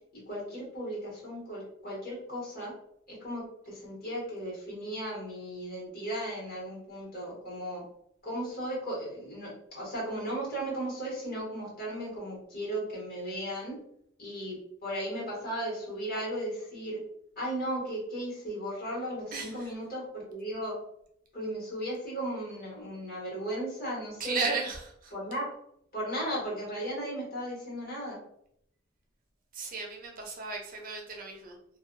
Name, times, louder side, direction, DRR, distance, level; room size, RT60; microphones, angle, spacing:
voice 1, 0.1-2.7 3.1-7.8 8.2-13.8 14.2-17.0 17.4-20.8 21.3-24.5 25.1-25.5 25.9-28.2, right 1 dB, 50° left, -5 dB, 1.4 m, -36 dB
voice 2, 19.3-19.7 24.2-25.1 29.5-31.8, right 4 dB, 45° right, 1 dB, 0.5 m, -35 dB
2.6 x 2.2 x 2.5 m, 0.71 s
head